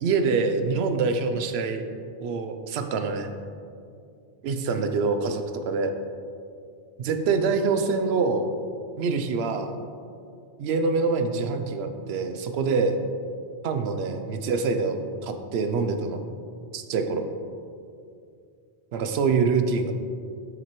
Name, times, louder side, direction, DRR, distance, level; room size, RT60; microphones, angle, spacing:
voice 1, 0.0-1.8 2.2-3.3 4.4-5.9 7.0-8.5 9.0-9.8 10.6-13.0 13.6-16.2 16.7-17.3 18.9-19.9, right 4 dB, 80° right, 7 dB, 0.8 m, -25 dB
7.8 x 6.0 x 3.0 m, 2.4 s
omnidirectional pair, 1.1 m